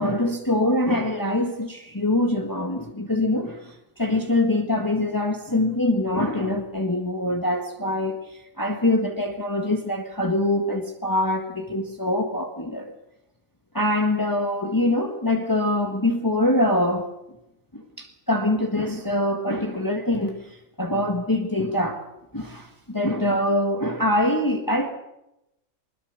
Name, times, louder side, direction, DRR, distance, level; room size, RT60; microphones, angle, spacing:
voice 1, 0.0-12.9 13.7-17.1 17.7-22.0 22.3-24.9, left 1 dB, 15° left, 3 dB, 1.8 m, -24 dB
21.5 x 21.0 x 6.7 m, 0.86 s
omnidirectional pair, 1.5 m